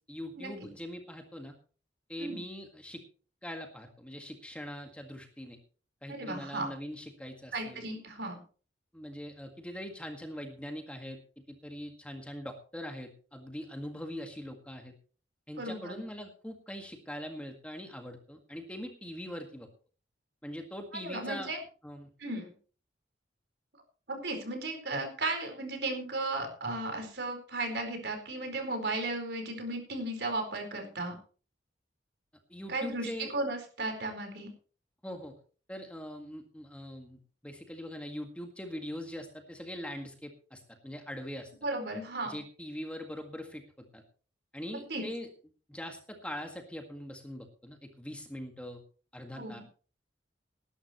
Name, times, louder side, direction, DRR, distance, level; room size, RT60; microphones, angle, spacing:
voice 1, 0.1-1.6 2.1-3.0 3.4-5.6 6.0-7.9 8.9-11.2 11.5-14.9 15.5-19.7 20.4-21.5 21.8-22.1 32.5-33.3 35.0-35.3 35.7-41.5 42.2-44.0 44.5-45.3 45.7-48.8 49.1-49.6, equal, 5° left, 3 dB, 1.7 m, -42 dB
voice 2, 6.1-6.7 7.5-8.4 15.6-16.0 21.0-21.6 22.2-22.5 24.1-31.2 32.7-34.5 41.6-42.4 44.7-45.0 49.4-49.6, right 2 dB, 65° right, 4 dB, 4.5 m, -35 dB
19.5 x 11.5 x 3.1 m, 0.39 s
head